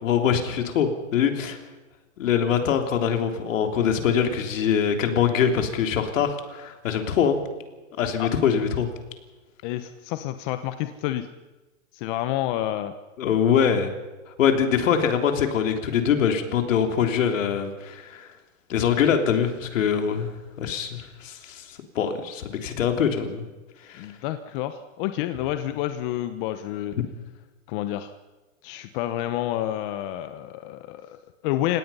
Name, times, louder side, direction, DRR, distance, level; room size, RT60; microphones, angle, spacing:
voice 1, 0.0-1.6 2.2-7.4 8.0-8.9 13.2-13.9 14.4-18.3 18.7-23.5 23.9-24.1, left 7 dB, 70° left, 5 dB, 3.3 m, -23 dB
voice 2, 9.6-11.3 11.9-12.9 24.0-27.0 27.7-28.1 28.6-31.8, left 13 dB, 40° left, 10 dB, 1.1 m, -29 dB
29.5 x 17.5 x 5.7 m, 1.2 s
hypercardioid pair, 140°, 40 cm